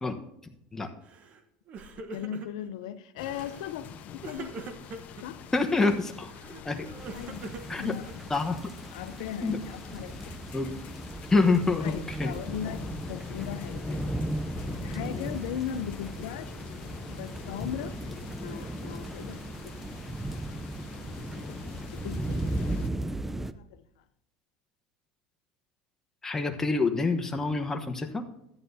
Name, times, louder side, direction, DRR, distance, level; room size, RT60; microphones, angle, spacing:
Crying sobbing, 1.1-1.4 1.7-2.7 3.2-3.7 4.2-5.2 6.1-8.4, right 3 dB, 45° right, 1.1 m, -43 dB
voice 1, 2.0-4.5 5.2-5.5 7.1-8.1 8.9-10.2 11.8-13.8 14.8-16.5 17.1-18.0 18.4-20.0 21.3-21.8 22.0-23.8, left 9 dB, 80° left, 0.5 m, -38 dB
sound 1, 3.2-22.9, left 7 dB, 50° left, 0.8 m, -44 dB
voice 2, 5.5-6.3 6.6-6.9 7.7-7.9 8.3-8.6 9.4-9.6 10.5-10.7 11.3-12.3 26.2-28.2, left 3 dB, 15° left, 1.0 m, -26 dB
sound 2, 7.0-23.5, right 1 dB, 10° right, 0.5 m, -37 dB
13.5 x 9.4 x 2.7 m
supercardioid pair, 100°, 3 cm